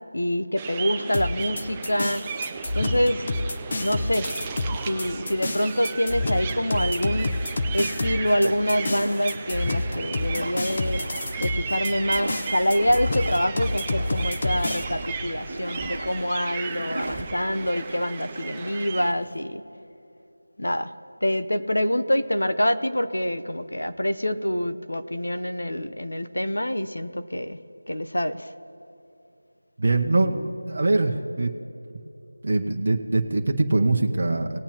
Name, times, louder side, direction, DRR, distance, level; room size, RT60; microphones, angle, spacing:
voice 1, 0.1-2.2 2.7-3.3 3.8-4.3 4.8-7.3 7.7-11.0 11.4-19.6 20.6-20.9 21.2-27.6 27.9-28.5, equal, 80° left, 10 dB, 0.8 m, -26 dB
sound 1, 0.6-19.1, right 6 dB, 15° right, 0.4 m, -35 dB
sound 2, 1.1-14.8, left 2 dB, 35° left, 0.7 m, -28 dB
sound 3, 8.4-19.4, right 1 dB, 80° right, 0.9 m, -38 dB
voice 2, 29.8-31.5 32.4-34.6, right 2 dB, 45° right, 1 dB, 0.9 m, -23 dB
19.0 x 8.4 x 3.0 m, 2.9 s
figure-of-eight pair, 170°, 0 cm